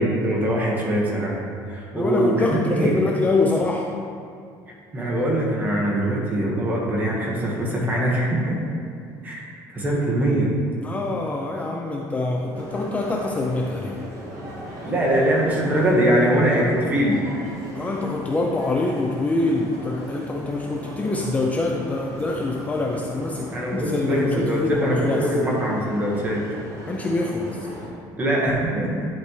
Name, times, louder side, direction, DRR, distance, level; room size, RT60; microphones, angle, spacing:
voice 1, 0.0-1.4 1.7-2.9 4.9-8.6 9.2-9.4 9.7-10.5 14.8-17.2 23.5-26.4 28.2-29.1, right 1 dB, 20° right, -3 dB, 1.5 m, -22 dB
voice 2, 1.9-3.9 10.8-14.0 17.7-25.3 26.9-27.6, left 2 dB, 15° left, -1 dB, 0.5 m, -25 dB
sound 1, 12.5-27.9, right 1 dB, 40° right, 1.7 m, -37 dB
11.0 x 4.3 x 3.2 m, 2.4 s
cardioid pair, 140°, 8 cm